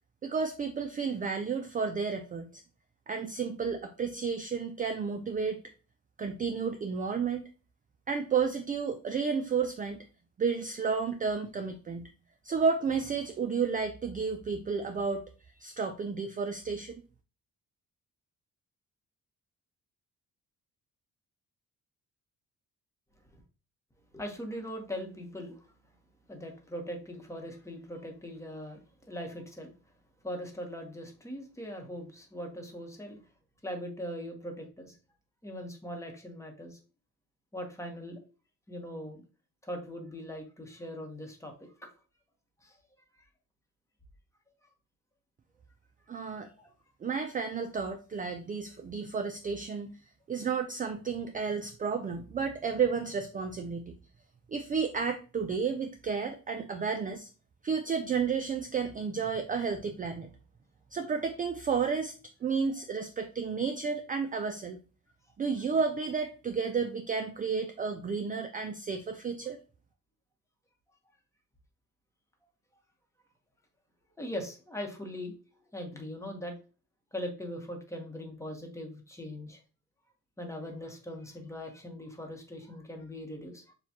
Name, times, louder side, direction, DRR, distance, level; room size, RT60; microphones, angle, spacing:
voice 1, 0.2-2.6 3.1-5.6 6.2-7.4 8.1-10.0 10.4-12.1 12.4-15.3 15.6-17.0 46.1-46.5 47.0-49.9 50.3-54.0 54.5-57.3 57.6-60.3 60.9-62.1 62.4-64.8 65.4-69.6, right 5 dB, 25° right, 7 dB, 0.4 m, -32 dB
voice 2, 24.1-25.7 26.3-29.7 30.2-33.2 33.6-35.0 35.4-36.8 37.5-38.2 38.7-39.2 39.6-41.9 42.6-42.8 46.6-46.7 74.2-75.4 75.7-76.5 77.1-79.6 80.4-83.7, equal, 10° left, 3 dB, 1.0 m, -40 dB
6.6 x 2.3 x 2.8 m, 0.36 s
cardioid pair, 105°, 33 cm